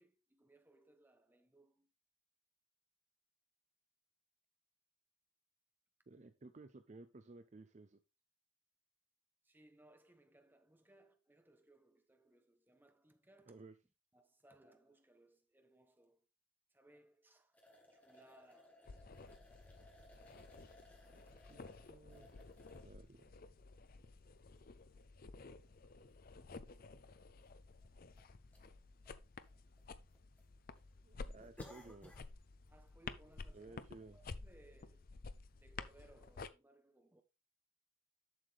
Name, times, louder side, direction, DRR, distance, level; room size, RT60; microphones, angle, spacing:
voice 1, 0.0-1.9 9.4-13.6 14.1-16.3 16.7-17.6 17.9-18.9 32.7-33.8 34.1-35.0 35.6-37.2, right 2 dB, 10° right, 0.8 m, -66 dB
voice 2, 6.1-8.0 13.5-13.7 21.5-21.6 21.9-22.5 22.8-23.4 31.0-32.1 33.5-34.2, right 3 dB, 35° right, 0.5 m, -56 dB
sound 1, 17.5-22.9 23.6-23.7 25.3-25.4 25.7-25.8 26.7-26.8 27.1-27.2 27.8-28.2 28.5-28.7 29.1-29.8 30.1-30.4 30.8-30.9 31.4-32.3 32.7-32.9 33.3-33.4, left 1 dB, 5° left, 1.5 m, -62 dB
sound 2, 18.8-36.5, left 4 dB, 45° left, 0.5 m, -53 dB
7.6 x 6.5 x 3.4 m
head